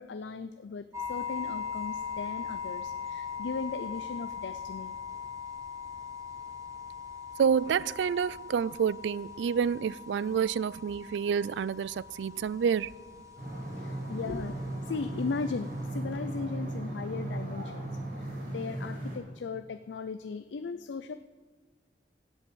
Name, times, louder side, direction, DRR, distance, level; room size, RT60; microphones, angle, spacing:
voice 1, 0.0-4.9 13.4-13.5 13.7-17.9 18.2-21.1, left 4 dB, 80° left, 0.5 m, -37 dB
sound 1, 0.9-15.9, left 6 dB, 20° right, 1.5 m, -41 dB
voice 2, 7.4-12.9, right 7 dB, 75° right, 0.3 m, -28 dB
sound 2, 13.4-19.2, right 1 dB, 50° right, 4.3 m, -36 dB
16.0 x 5.5 x 8.7 m
head